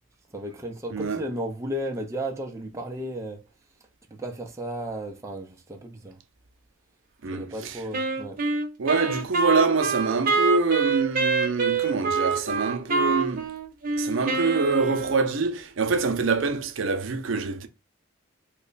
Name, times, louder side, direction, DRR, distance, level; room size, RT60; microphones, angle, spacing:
voice 1, 0.3-3.4 4.1-6.2 7.3-8.4, right 1 dB, 15° right, 0.4 m, -34 dB
voice 2, 0.9-1.2 7.2-7.8 8.8-13.5 14.0-17.7, right 4 dB, 70° right, 0.5 m, -25 dB
Wind instrument woodwind instrument, 7.9-15.4, right 4 dB, 45° right, 0.8 m, -26 dB
3.2 x 2.1 x 3.8 m
head